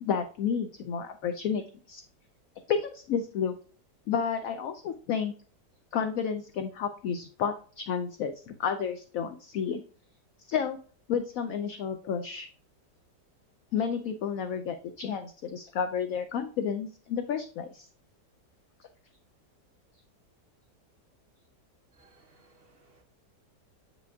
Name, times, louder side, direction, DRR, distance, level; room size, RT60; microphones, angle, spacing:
voice 1, 0.0-2.0 2.7-3.5 4.1-5.3 5.9-9.8 10.5-10.8 11.1-12.5 13.7-17.9, left 7 dB, 70° left, 8 dB, 0.9 m, -31 dB
voice 2, 22.0-23.0, right 3 dB, 55° right, 4 dB, 0.6 m, -62 dB
8.2 x 5.1 x 2.3 m, 0.42 s
omnidirectional pair, 1.8 m